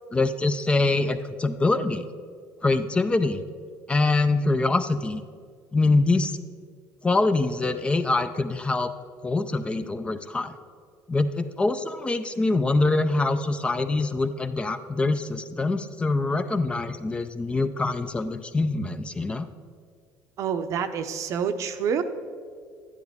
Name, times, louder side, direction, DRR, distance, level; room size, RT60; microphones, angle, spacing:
voice 1, 0.1-2.0 2.6-3.4 3.9-5.2 5.7-6.3 7.0-8.9 9.2-10.6 11.1-19.5, left 3 dB, 15° left, 10 dB, 0.4 m, -24 dB
voice 2, 20.4-22.0, right 7 dB, 55° right, 9 dB, 0.7 m, -27 dB
11.5 x 10.0 x 3.5 m, 2.1 s
cardioid pair, 120°, 6 cm